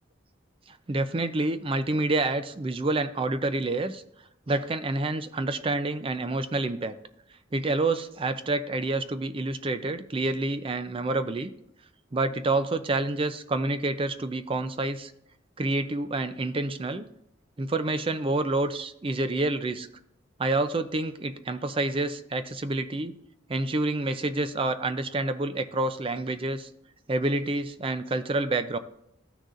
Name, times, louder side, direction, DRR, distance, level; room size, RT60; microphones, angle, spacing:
voice 1, 0.7-4.0 4.5-6.9 7.5-11.5 12.1-15.1 15.6-17.1 17.6-19.9 20.4-23.1 23.5-26.7 27.1-28.8, right 2 dB, 30° right, 11 dB, 0.5 m, -28 dB
15.0 x 6.4 x 2.5 m, 0.76 s
head